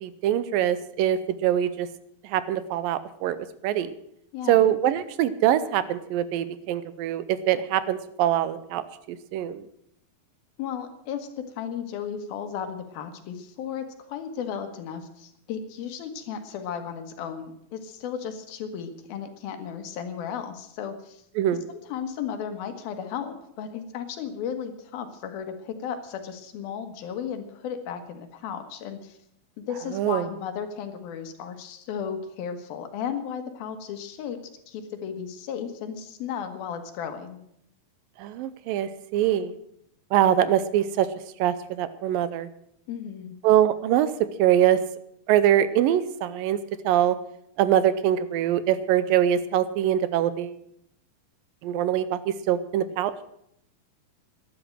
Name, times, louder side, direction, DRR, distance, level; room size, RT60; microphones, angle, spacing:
voice 1, 0.0-1.9 2.2-3.4 3.6-3.9 4.5-9.6 21.4-21.6 29.9-30.2 38.2-39.5 40.1-41.1 41.4-42.5 43.4-44.1 44.4-44.8 45.3-46.6 46.9-47.2 47.6-50.6 51.6-53.1, right 11 dB, 80° right, 14 dB, 2.4 m, -23 dB
voice 2, 4.3-4.6 10.6-11.3 11.6-21.2 21.7-29.2 29.6-34.4 34.7-37.4 42.9-43.3, left 8 dB, 80° left, 7 dB, 3.2 m, -35 dB
12.5 x 10.5 x 7.7 m, 0.74 s
omnidirectional pair, 4.2 m